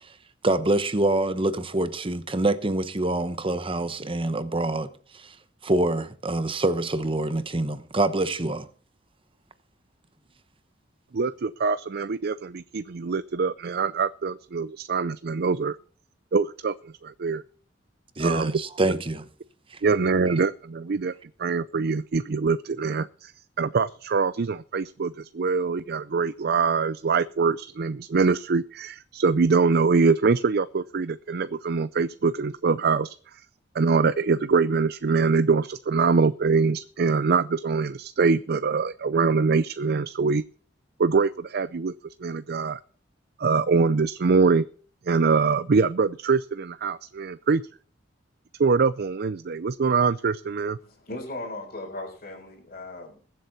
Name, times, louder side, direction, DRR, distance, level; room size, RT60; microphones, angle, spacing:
voice 1, 0.4-4.9 5.1-5.3 5.6-8.7 18.2-19.2, right 2 dB, 30° right, 1.0 m, -25 dB
voice 2, 11.1-15.8 16.3-17.4 18.2-18.5 19.8-21.1 21.4-23.3 23.6-33.5 33.7-40.4 41.0-42.8 43.4-44.6 45.0-47.6 48.6-50.8, right 4 dB, 55° right, 0.5 m, -24 dB
voice 3, 50.8-53.3, left 2 dB, 45° left, 4.0 m, -37 dB
21.5 x 7.9 x 4.1 m
head